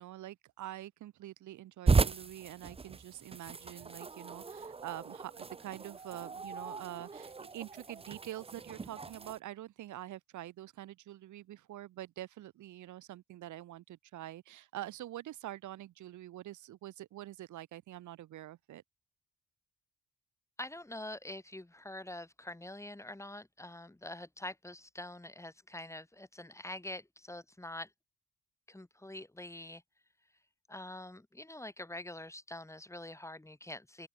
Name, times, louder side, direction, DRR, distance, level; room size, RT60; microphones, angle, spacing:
voice 1, 0.0-18.8, right 14 dB, 75° right, 1.2 m, -46 dB
sound 1, 1.9-9.4, right 4 dB, 20° right, 0.8 m, -35 dB
voice 2, 20.6-27.9 28.7-29.8 30.7-34.1, left 1 dB, 10° left, 3.0 m, -45 dB
open air
cardioid pair, 90°, 30 cm